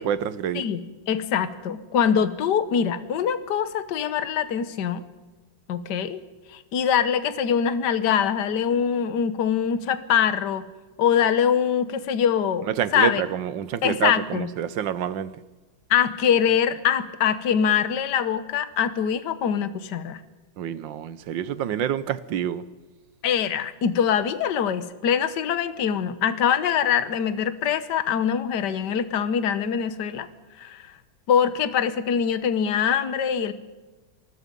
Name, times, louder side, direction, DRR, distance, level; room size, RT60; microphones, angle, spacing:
voice 1, 0.0-0.6 12.8-15.3 20.6-22.6, right 9 dB, 75° right, 1.6 m, -27 dB
voice 2, 0.5-5.0 5.7-6.2 6.5-10.7 11.0-13.2 13.8-14.5 15.9-20.2 23.2-30.3 30.6-30.9 31.3-33.5, left 8 dB, 65° left, 1.7 m, -23 dB
26.5 x 20.0 x 5.4 m
omnidirectional pair, 2.0 m